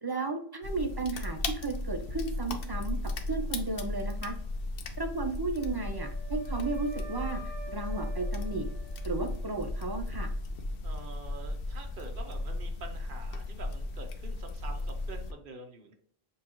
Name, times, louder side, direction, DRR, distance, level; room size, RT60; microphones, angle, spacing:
voice 1, 0.0-3.0 3.3-4.3 5.0-8.7 9.0-10.3, right 3 dB, 40° right, 4 dB, 0.3 m, -34 dB
sound 1, 0.6-15.3, left 2 dB, 65° left, 0.8 m, -35 dB
Wind instrument woodwind instrument, 5.6-9.7, right 2 dB, 75° right, 1.3 m, -48 dB
voice 2, 10.8-15.9, right 3 dB, 55° right, 4 dB, 1.0 m, -46 dB
6.8 x 2.3 x 3.0 m, 0.63 s
omnidirectional pair, 1.1 m